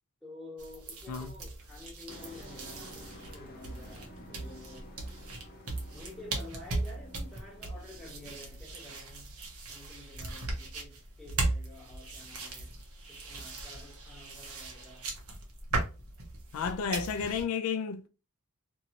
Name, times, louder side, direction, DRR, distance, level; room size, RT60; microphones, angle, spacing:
voice 1, 0.2-5.0 5.9-9.4 9.7-12.7 13.1-15.1, left 2 dB, ahead, 1.3 m, -50 dB
sound 1, 0.6-17.4, right 2 dB, 80° right, 0.9 m, -38 dB
Truck, 2.1-8.8, equal, 45° left, 0.6 m, -51 dB
voice 2, 16.5-18.1, left 6 dB, 80° left, 0.4 m, -32 dB
2.8 x 2.7 x 2.6 m
head